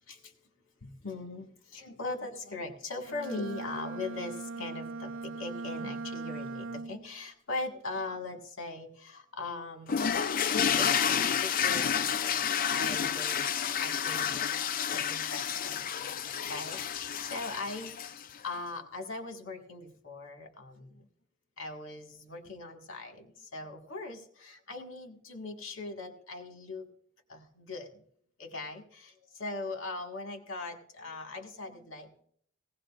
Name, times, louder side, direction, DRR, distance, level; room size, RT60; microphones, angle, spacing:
voice 1, 0.8-10.0 10.5-12.4 12.7-14.6 14.9-16.1 16.5-21.1 21.6-26.9 27.3-28.0 28.4-32.2, left 3 dB, 90° left, 3 dB, 1.8 m, -40 dB
Bowed string instrument, 3.0-7.2, right 3 dB, 80° right, 0.5 m, -40 dB
sound 1, 9.9-18.4, left 8 dB, 45° left, 0.4 m, -30 dB
18.0 x 17.0 x 2.5 m, 0.65 s
head